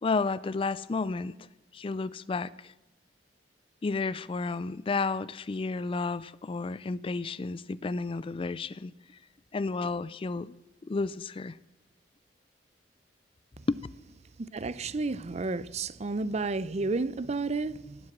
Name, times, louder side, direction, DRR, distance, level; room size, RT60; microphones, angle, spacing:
voice 1, 0.0-1.3 1.7-2.7 3.8-8.9 9.5-10.5 10.8-11.6 13.7-13.8, left 4 dB, 30° left, 0.4 m, -31 dB
voice 2, 14.4-18.0, right 3 dB, 40° right, 0.5 m, -31 dB
17.0 x 7.8 x 7.5 m
head